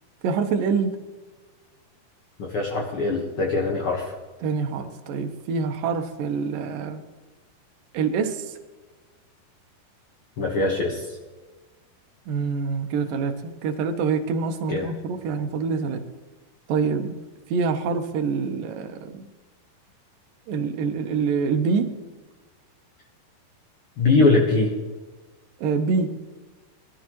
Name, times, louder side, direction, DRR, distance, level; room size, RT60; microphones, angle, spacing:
voice 1, 0.2-1.0 4.4-7.0 7.9-8.6 12.3-16.0 16.7-17.2 17.5-19.3 20.5-21.9 25.6-26.1, right 5 dB, 70° right, 6 dB, 2.3 m, -26 dB
voice 2, 2.4-4.1 10.4-11.2 14.7-14.9 24.0-24.7, left 3 dB, 85° left, 0 dB, 1.2 m, -22 dB
21.5 x 12.5 x 3.1 m, 1.3 s
omnidirectional pair, 4.8 m